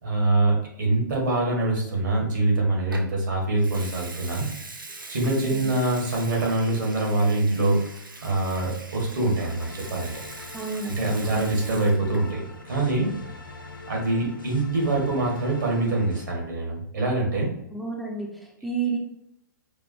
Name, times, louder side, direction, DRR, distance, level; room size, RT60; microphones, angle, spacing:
voice 1, 0.0-4.4 5.1-7.8 8.2-10.1 10.8-13.2 13.9-17.5, right 2 dB, 65° right, -2 dB, 1.5 m, -24 dB
Water tap faucet / Sink (filling or washing) / Liquid, 2.9-3.1 3.6-12.3 12.6-13.0, right 3 dB, 85° right, 0.6 m, -42 dB
sound 1, 9.4-16.2, left 3 dB, 85° left, 0.9 m, -43 dB
voice 2, 10.5-10.9 11.2-11.5 17.7-19.0, right 4 dB, ahead, -2 dB, 0.5 m, -31 dB
4.6 x 2.5 x 2.6 m, 0.79 s
figure-of-eight pair, 115°, 11 cm